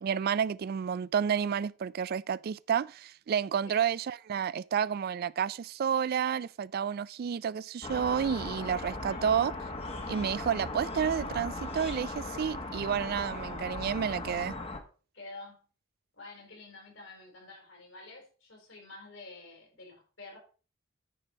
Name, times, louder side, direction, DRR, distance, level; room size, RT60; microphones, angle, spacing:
voice 1, 0.0-9.5 10.1-14.5, right 7 dB, 50° right, 0.3 m, -30 dB
sound 1, 7.8-14.8, left 2 dB, 30° left, 1.3 m, -38 dB
voice 2, 15.1-15.6 16.1-20.4, left 2 dB, 75° left, 4.4 m, -49 dB
9.9 x 4.4 x 5.2 m
head